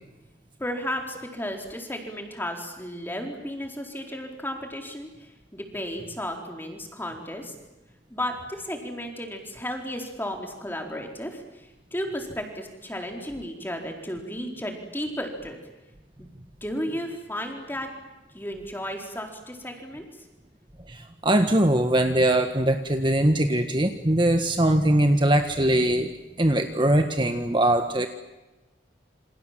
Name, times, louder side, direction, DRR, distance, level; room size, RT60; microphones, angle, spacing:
voice 1, 0.6-7.5 8.1-15.6 16.2-16.3 16.6-17.9 18.3-20.1, equal, 10° left, 3 dB, 4.3 m, -34 dB
voice 2, 20.9-26.1 26.4-28.1, right 1 dB, 25° right, 6 dB, 1.6 m, -21 dB
28.5 x 26.5 x 7.7 m, 1.1 s
head